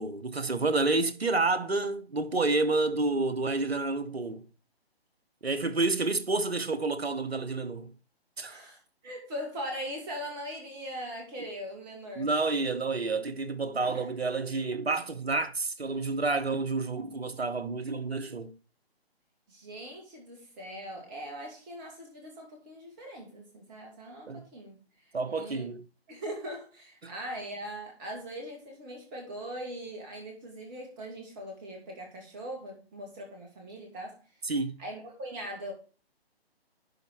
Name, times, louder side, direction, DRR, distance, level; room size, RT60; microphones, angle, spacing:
voice 1, 0.0-4.5 5.4-7.9 8.4-8.5 12.2-18.5 24.3-24.4 25.1-25.8 27.0-27.1 34.4-34.8, right 3 dB, 75° right, 1.0 m, -29 dB
voice 2, 8.5-12.3 13.8-14.0 19.5-25.7 26.1-34.2 34.8-35.7, equal, 20° right, 2.1 m, -41 dB
11.0 x 4.3 x 4.3 m
figure-of-eight pair, 140°, 32 cm